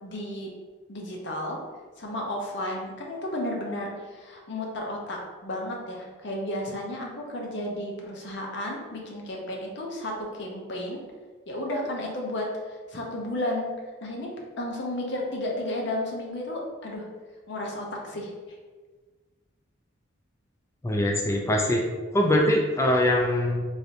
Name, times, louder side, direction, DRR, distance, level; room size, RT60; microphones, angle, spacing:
voice 1, 0.0-0.5 0.9-1.6 2.0-11.0 11.5-13.7 14.0-17.0 17.5-18.3, left 1 dB, 60° left, -1 dB, 0.6 m, -33 dB
voice 2, 20.8-21.8 22.1-23.7, left 1 dB, 15° left, 0 dB, 0.3 m, -23 dB
3.2 x 2.6 x 2.8 m, 1.4 s
head